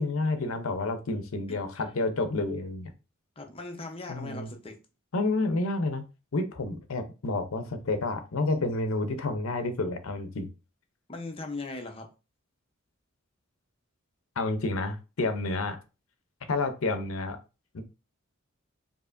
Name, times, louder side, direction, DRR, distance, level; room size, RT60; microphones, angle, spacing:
voice 1, 0.0-2.9 4.1-4.5 5.1-10.5 14.4-15.8 16.5-17.4 17.7-17.8, left 2 dB, 70° left, 9 dB, 0.6 m, -30 dB
voice 2, 3.4-4.8 11.1-12.1, left 3 dB, 25° left, 4 dB, 0.7 m, -38 dB
4.5 x 2.8 x 2.5 m, 0.30 s
head